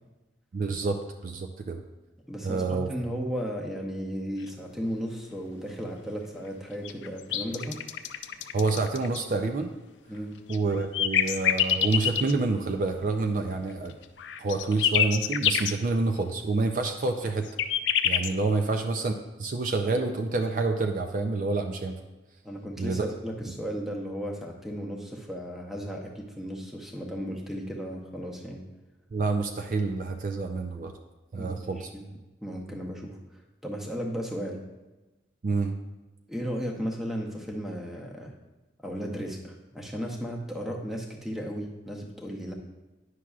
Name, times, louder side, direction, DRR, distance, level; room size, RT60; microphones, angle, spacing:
voice 1, 0.5-1.8 2.4-2.9 8.5-9.7 10.5-13.9 14.4-17.5 18.0-19.1 19.4-22.0 22.8-23.1 29.1-30.9 31.3-31.9 35.4-35.8, right 3 dB, 45° right, 5 dB, 0.4 m, -28 dB
voice 2, 2.3-7.8 10.1-10.3 18.5-18.7 22.4-28.6 31.3-32.1 32.4-33.2 33.6-34.6 36.3-38.3 38.8-42.5, equal, ahead, 0 dB, 0.7 m, -35 dB
sound 1, 6.8-9.2 10.5-12.3 13.9-15.7 17.3-18.3, left 10 dB, 90° left, 0.4 m, -26 dB
9.6 x 6.0 x 2.4 m, 1.1 s
head